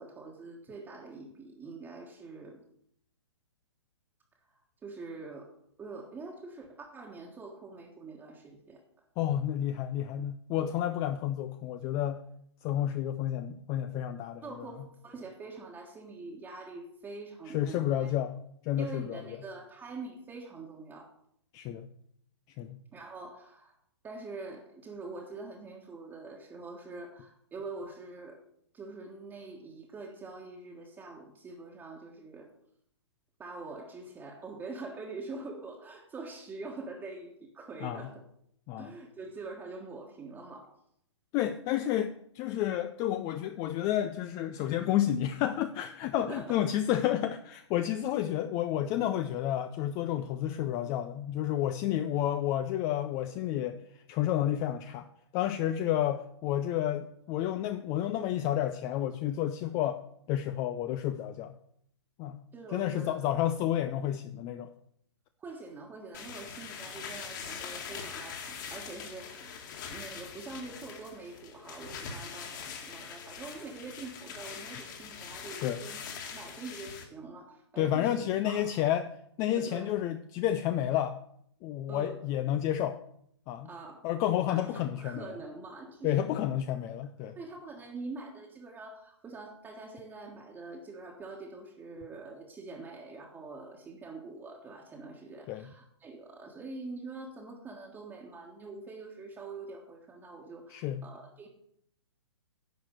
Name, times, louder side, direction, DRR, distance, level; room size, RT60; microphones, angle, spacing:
voice 1, 0.0-2.6 4.8-5.5 5.8-8.8 14.4-18.1 18.8-21.1 22.9-23.7 24.0-28.4 28.7-32.5 33.4-38.2 38.8-40.7 46.2-46.6 62.5-63.2 65.4-68.4 68.7-76.0 76.3-78.2 78.4-78.9 79.5-79.9 81.8-82.2 83.6-84.1 84.5-86.5 87.3-101.5, right 3 dB, 15° right, -1 dB, 1.4 m, -44 dB
voice 2, 9.2-12.2 12.6-14.4 17.5-19.2 21.5-21.9 22.6-22.8 37.8-38.1 38.7-38.9 41.3-55.1 55.3-60.0 60.3-61.5 62.2-62.4 62.7-64.7 75.5-75.8 77.8-79.1 79.4-81.2 81.6-83.0 83.5-83.7 84.0-85.4 86.0-87.4 95.5-95.7 100.7-101.0, left 11 dB, 25° left, 10 dB, 0.5 m, -30 dB
sound 1, 66.1-77.0, left 6 dB, 45° left, 2.2 m, -43 dB
11.0 x 4.9 x 8.1 m, 0.70 s
figure-of-eight pair, 125°, 15 cm